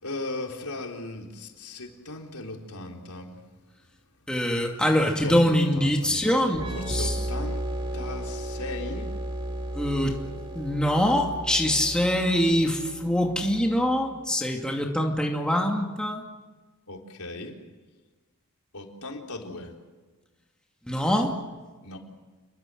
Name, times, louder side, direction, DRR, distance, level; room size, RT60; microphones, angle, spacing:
voice 1, 0.0-3.4 5.0-10.0 10.6-10.8 16.9-17.6 18.7-19.7 21.8-22.0, left 2 dB, 85° left, 1 dB, 4.1 m, -38 dB
voice 2, 4.3-7.2 9.7-10.2 10.5-16.2 20.9-21.4, equal, 5° left, 1 dB, 2.5 m, -24 dB
sound 1, 6.5-14.1, right 1 dB, 25° right, 3.8 m, -34 dB
29.0 x 22.0 x 7.8 m, 1.3 s
head